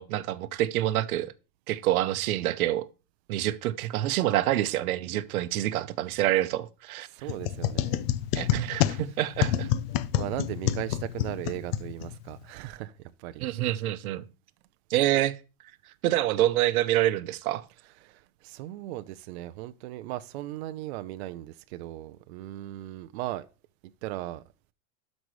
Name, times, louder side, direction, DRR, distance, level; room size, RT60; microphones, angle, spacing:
voice 1, 0.0-1.3 1.7-2.9 3.3-7.1 8.3-9.7 13.4-14.2 14.9-15.4 16.0-17.6, right 14 dB, 80° right, 0.8 m, -27 dB
voice 2, 7.1-8.1 10.2-12.9 13.2-13.4 18.0-23.5 24.0-24.4, right 15 dB, 50° right, 0.6 m, -37 dB
sound 1, 7.3-12.4, left 12 dB, 45° left, 0.5 m, -28 dB
12.5 x 5.3 x 3.1 m
supercardioid pair, 165°, 42 cm